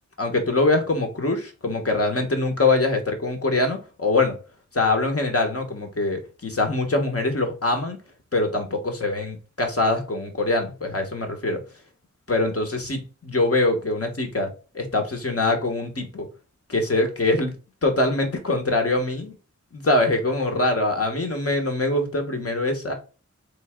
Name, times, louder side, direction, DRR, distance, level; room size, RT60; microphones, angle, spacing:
voice 1, 0.2-4.3 4.7-8.0 8.3-11.6 12.3-14.5 14.7-16.3 16.7-17.5 17.8-19.3 19.7-22.9, left 2 dB, 50° left, 4 dB, 1.3 m, -23 dB
3.9 x 3.4 x 3.7 m, 0.33 s
wide cardioid pair, 65°, 30 cm